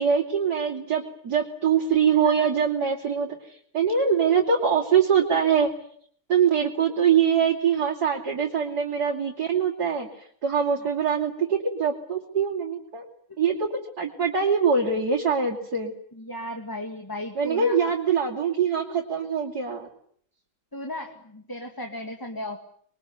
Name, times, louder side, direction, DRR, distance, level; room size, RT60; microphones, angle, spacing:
voice 1, 0.0-5.7 6.3-13.0 13.4-13.5 14.0-15.9 17.4-19.9, right 6 dB, 50° right, -1 dB, 3.4 m, -23 dB
voice 2, 16.1-17.9 18.7-19.0 20.7-22.6, left 1 dB, 10° left, 4 dB, 2.1 m, -36 dB
26.5 x 22.5 x 9.6 m, 0.63 s
omnidirectional pair, 2.2 m